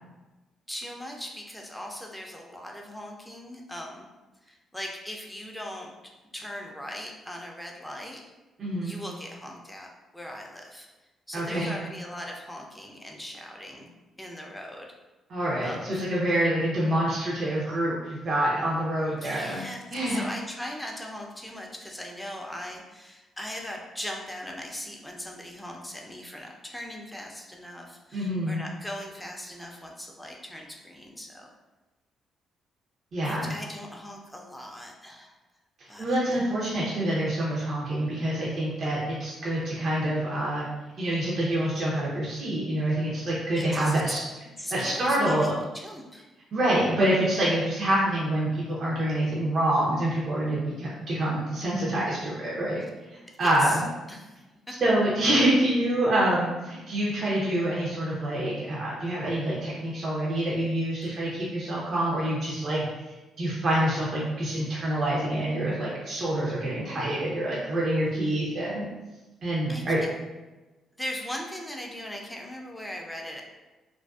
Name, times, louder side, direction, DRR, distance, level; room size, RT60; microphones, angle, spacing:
voice 1, 0.7-4.1 4.4-5.9 6.3-8.2 8.8-9.9 10.1-10.9 11.3-13.9 14.2-14.9 15.6-16.1 19.2-31.5 33.2-35.3 35.9-36.4 43.6-44.0 44.6-46.2 53.3-53.8 54.1-54.4 54.7-54.8 61.0-61.2 69.7-70.1 71.0-73.4, left 1 dB, 10° left, 0 dB, 0.5 m, -39 dB
voice 2, 8.6-8.9 11.3-11.7 15.3-19.6 19.9-20.2 28.1-28.6 33.1-33.5 36.0-40.7 41.0-44.2 44.7-45.5 46.5-52.8 53.1-53.8 54.8-62.8 63.4-68.9 69.4-70.0, right 1 dB, 55° right, -6 dB, 0.6 m, -26 dB
2.5 x 2.2 x 2.3 m, 1.1 s
hypercardioid pair, 50°, 0 cm